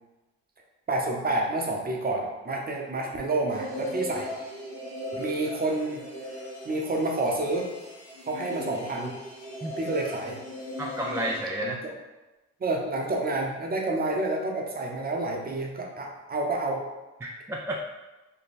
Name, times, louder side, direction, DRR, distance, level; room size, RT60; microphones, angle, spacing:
voice 1, 0.9-4.3 5.2-6.0 6.6-7.7 8.3-9.2 9.8-10.4 11.6-11.7 12.6-16.8, right 2 dB, 30° right, 0 dB, 0.8 m, -29 dB
sound 1, 3.5-11.4, equal, 60° left, 1.2 m, -38 dB
voice 2, 10.8-11.8 17.2-17.8, equal, 10° right, -1 dB, 0.3 m, -31 dB
3.3 x 2.2 x 4.2 m, 1.1 s
cardioid pair, 90°, 30 cm